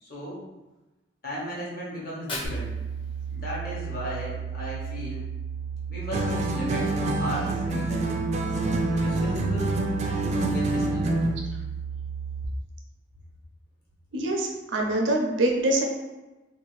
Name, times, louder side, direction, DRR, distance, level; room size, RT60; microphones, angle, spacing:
voice 1, 0.0-0.4 1.2-2.7 3.2-5.2 5.9-8.1 9.0-11.1, equal, 55° left, -6 dB, 1.0 m, -36 dB
Fire, 2.0-4.0, left 2 dB, 30° left, 0.6 m, -40 dB
sound 1, 2.4-12.5, right 7 dB, 85° left, 0.5 m, -34 dB
sound 2, 6.1-11.4, right 2 dB, 35° right, 0.3 m, -26 dB
voice 2, 14.1-15.9, right 1 dB, 85° right, 1 dB, 0.6 m, -24 dB
2.7 x 2.4 x 3.0 m, 1.1 s
head